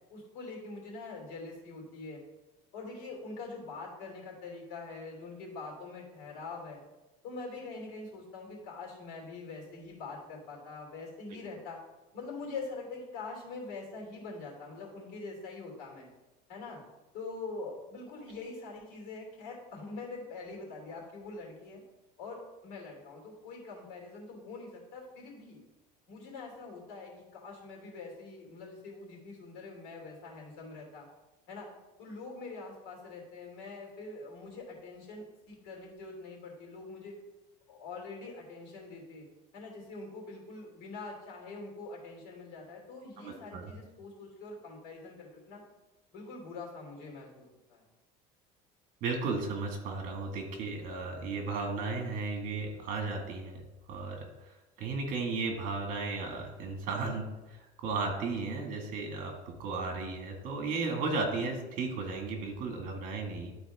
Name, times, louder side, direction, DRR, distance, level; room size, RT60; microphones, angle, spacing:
voice 1, 0.1-2.2 2.7-6.8 7.2-11.8 12.1-16.1 16.5-16.8 17.1-21.8 22.2-25.6 26.1-31.1 31.5-31.7 32.0-37.2 37.7-39.2 39.5-45.6 46.1-47.4 47.7-47.9, left 3 dB, 80° left, -1 dB, 3.0 m, -44 dB
voice 2, 43.2-43.7 49.0-53.6 53.9-54.5 54.8-63.5, right 3 dB, 55° right, 2 dB, 2.0 m, -35 dB
12.0 x 4.3 x 3.6 m, 1.1 s
cardioid pair, 150°, 17 cm